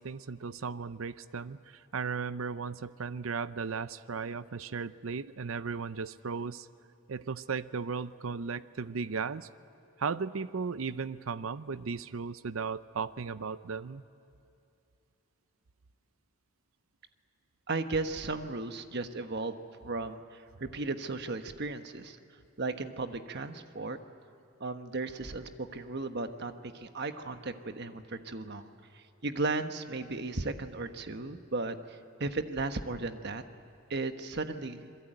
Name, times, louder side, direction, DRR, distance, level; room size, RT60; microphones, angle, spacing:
voice 1, 0.0-6.7 7.1-9.5 10.0-14.0, right 5 dB, 85° right, 15 dB, 0.6 m, -36 dB
voice 2, 17.7-19.5 19.8-22.2 22.6-24.0 24.6-28.7 28.9-31.8 32.2-33.4 33.9-34.9, right 3 dB, 55° right, 8 dB, 1.3 m, -35 dB
27.0 x 22.0 x 9.1 m, 2.6 s
head